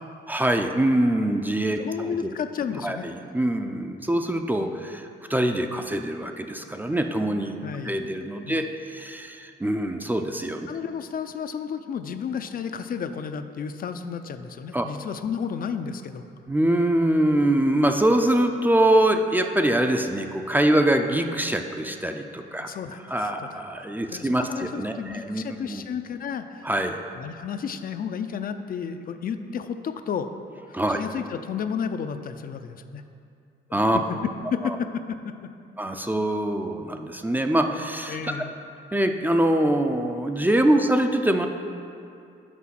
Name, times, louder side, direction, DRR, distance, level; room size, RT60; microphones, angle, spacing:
voice 1, 0.3-1.8 2.8-7.5 7.8-10.7 14.7-14.9 16.5-22.7 23.1-25.4 25.7-25.8 26.6-27.0 30.7-31.0 33.7-34.0 34.6-34.8 35.8-38.2 38.9-41.5, right 1 dB, 10° right, 5 dB, 0.4 m, -24 dB
voice 2, 1.8-3.1 7.6-8.0 8.4-8.7 10.7-16.2 22.6-23.6 24.1-26.7 27.2-30.3 30.7-33.0 33.7-35.5 38.1-38.5, left 7 dB, 45° left, 9 dB, 0.4 m, -32 dB
6.1 x 5.1 x 5.8 m, 2.5 s
cardioid pair, 90°, 20 cm